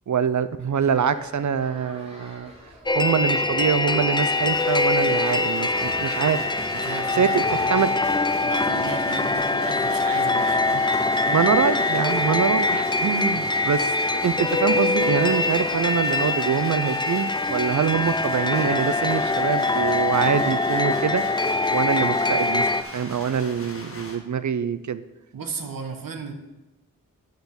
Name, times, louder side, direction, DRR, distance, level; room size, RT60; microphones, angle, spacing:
voice 1, 0.1-2.5 2.9-6.4 7.2-7.9 10.7-10.8 11.2-21.2 21.7-22.7 22.9-25.0, right 7 dB, 60° right, 14 dB, 0.5 m, -24 dB
sound 1, 0.8-16.2, equal, 20° right, 2.9 m, -45 dB
sound 2, 2.9-22.8, left 2 dB, 15° left, 0.4 m, -23 dB
sound 3, 4.2-24.2, left 2 dB, 40° left, 1.6 m, -40 dB
voice 2, 6.7-8.0 8.4-10.7 13.3-13.5 25.3-26.3, right 5 dB, 85° right, 4 dB, 1.2 m, -34 dB
10.0 x 4.0 x 7.0 m, 1.0 s
wide cardioid pair, 80°, 33 cm